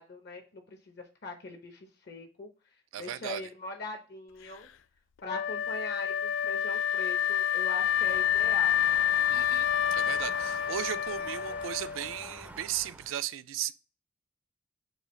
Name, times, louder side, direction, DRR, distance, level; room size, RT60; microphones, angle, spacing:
voice 1, 0.0-2.5 3.0-4.7 5.2-8.8, left 2 dB, 55° left, 0.7 m, -42 dB
voice 2, 2.9-3.4 9.3-13.7, right 11 dB, 90° right, 0.3 m, -36 dB
Wind instrument woodwind instrument, 5.3-12.3, left 9 dB, 80° left, 0.3 m, -28 dB
sound 1, 7.8-13.1, right 1 dB, 5° right, 0.4 m, -47 dB
4.8 x 2.5 x 3.0 m
head